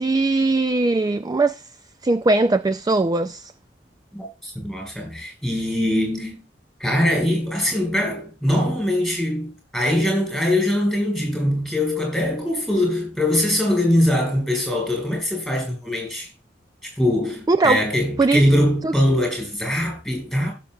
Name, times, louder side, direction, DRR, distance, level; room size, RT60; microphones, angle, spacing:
voice 1, 0.0-1.6 2.0-3.5 17.5-17.8 18.2-18.4 18.8-18.9, right 3 dB, 20° right, 0.4 m, -20 dB
voice 2, 4.1-6.4 6.8-16.3 16.8-20.5, left 1 dB, ahead, 5.3 m, -22 dB
16.5 x 6.7 x 2.3 m
head